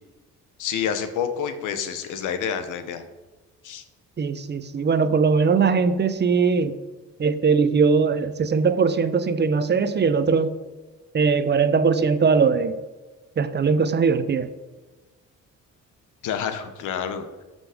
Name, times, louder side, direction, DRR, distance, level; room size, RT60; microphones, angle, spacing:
voice 1, 0.6-3.0 3.6-3.8 16.2-17.2, left 8 dB, 85° left, 8 dB, 1.1 m, -28 dB
voice 2, 4.2-6.8 7.2-10.6 11.1-12.8 13.4-14.5, right 5 dB, 35° right, 12 dB, 0.7 m, -20 dB
12.5 x 5.4 x 5.1 m, 1.2 s
cardioid pair, 90°, 30 cm